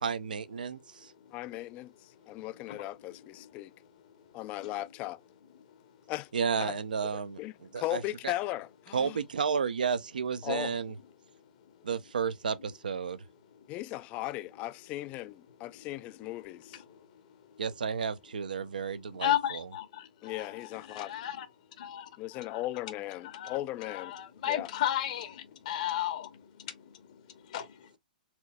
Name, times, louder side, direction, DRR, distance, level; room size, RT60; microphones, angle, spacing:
voice 1, 0.0-1.1 6.3-8.3 8.9-10.9 11.8-13.2 17.6-19.7, right 6 dB, 70° right, 0.5 m, -32 dB
voice 2, 1.3-3.7 4.3-5.2 6.1-6.3 6.6-6.7 7.4-9.2 10.4-10.7 13.7-16.8 20.2-21.1 22.2-24.1 24.4-24.7, left 16 dB, 30° left, 0.3 m, -37 dB
voice 3, 19.2-20.6 20.8-21.5 21.8-22.6 23.2-23.6 23.9-27.2 27.5-27.9, left 11 dB, 50° left, 0.8 m, -34 dB
4.4 x 3.2 x 2.2 m
figure-of-eight pair, 110°, 5 cm